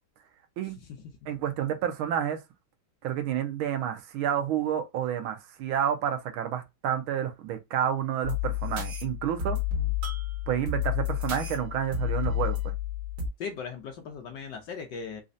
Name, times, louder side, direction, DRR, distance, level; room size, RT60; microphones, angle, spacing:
voice 1, 1.3-2.4 3.0-9.6 10.5-12.6, right 10 dB, 80° right, 1.4 m, -29 dB
sound 1, 8.2-13.3, left 9 dB, 50° right, 1.5 m, -30 dB
voice 2, 13.4-15.2, left 5 dB, 70° left, 1.1 m, -38 dB
4.1 x 2.6 x 2.6 m
omnidirectional pair, 2.3 m